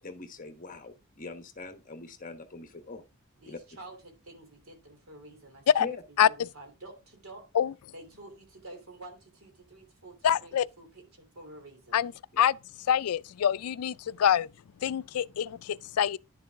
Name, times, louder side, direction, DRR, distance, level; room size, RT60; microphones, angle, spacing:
voice 1, 0.0-3.0 3.4-3.6 5.8-6.0 12.3-12.5, left 3 dB, 35° left, 1.2 m, -42 dB
voice 2, 3.4-5.9 6.2-7.4 7.9-12.0, right 2 dB, 70° right, 3.1 m, -49 dB
voice 3, 10.2-10.7 11.9-12.1 12.4-12.6 12.9-14.5 14.8-16.2, left 9 dB, 80° left, 0.4 m, -25 dB
10.5 x 6.8 x 3.5 m
head